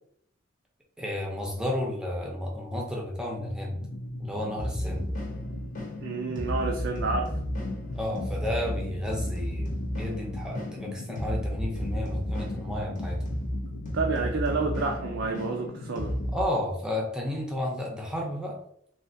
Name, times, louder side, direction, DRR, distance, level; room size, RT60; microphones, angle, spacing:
voice 1, 1.0-3.8 4.2-5.1 7.9-13.2 16.3-18.6, left 1 dB, 5° right, -1 dB, 0.6 m, -32 dB
sound 1, 3.4-16.4, left 2 dB, 70° left, 0.5 m, -39 dB
sound 2, 4.6-16.4, equal, 40° left, 0.8 m, -33 dB
voice 2, 6.0-7.3 13.9-16.1, right 4 dB, 65° right, 2 dB, 0.4 m, -29 dB
3.2 x 2.3 x 2.6 m, 0.68 s
head